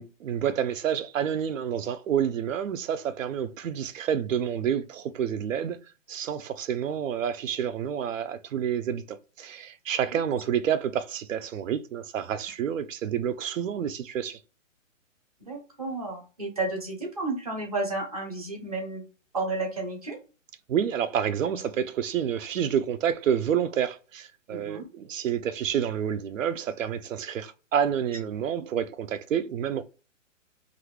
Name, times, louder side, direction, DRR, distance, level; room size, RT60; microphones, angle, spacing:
voice 1, 0.0-5.8 6.1-14.4 20.7-29.8, right 8 dB, 75° right, 0.6 m, -29 dB
voice 2, 15.4-19.0 19.3-20.2 24.5-24.8, right 2 dB, 30° right, 0.7 m, -32 dB
2.6 x 2.5 x 3.2 m
hypercardioid pair, 180°, 39 cm